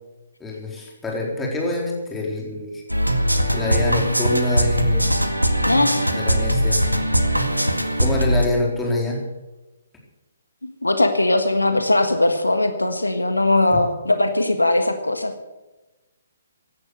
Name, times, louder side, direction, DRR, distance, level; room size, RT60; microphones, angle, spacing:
voice 1, 0.4-2.8 3.5-5.1 6.1-6.8 8.0-9.2 13.7-13.8, left 2 dB, 10° left, -2 dB, 4.1 m, -25 dB
sound 1, 2.9-8.5, equal, 85° right, 1.9 m, -20 dB
voice 2, 5.7-6.1 10.8-15.3, left 2 dB, 80° left, 8 dB, 1.6 m, -20 dB
16.5 x 11.5 x 6.7 m, 1.1 s
figure-of-eight pair, 130°, 0 cm